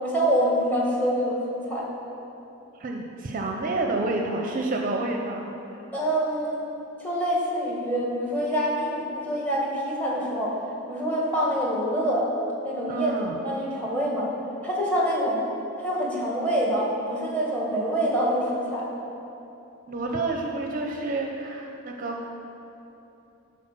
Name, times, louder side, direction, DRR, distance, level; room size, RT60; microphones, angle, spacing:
voice 1, 0.0-1.8 5.9-6.6 7.0-10.6 10.9-12.3 12.6-13.1 13.4-14.3 14.6-15.4 15.8-18.9, equal, 10° left, -4 dB, 1.8 m, -26 dB
voice 2, 2.8-5.6 12.9-13.4 19.9-22.3, right 2 dB, 40° right, 1 dB, 0.6 m, -29 dB
11.5 x 4.2 x 6.1 m, 3.0 s
head